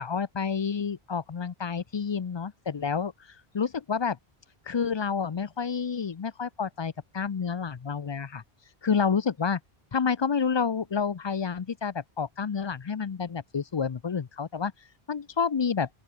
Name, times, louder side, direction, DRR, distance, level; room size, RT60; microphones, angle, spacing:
voice 1, 0.0-3.1 3.5-4.2 4.7-8.4 8.8-9.6 9.9-14.7 15.1-15.9, left 6 dB, 40° left, 0.4 m, -29 dB
open air
omnidirectional pair, 1.1 m